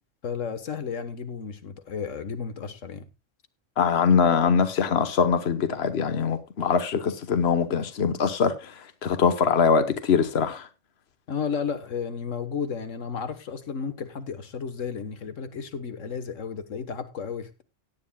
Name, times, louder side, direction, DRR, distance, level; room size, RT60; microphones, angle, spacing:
voice 1, 0.2-3.0 11.3-17.6, left 6 dB, 90° left, 1.6 m, -33 dB
voice 2, 3.8-10.7, left 6 dB, 60° left, 1.4 m, -23 dB
17.0 x 10.5 x 2.3 m
omnidirectional pair, 1.3 m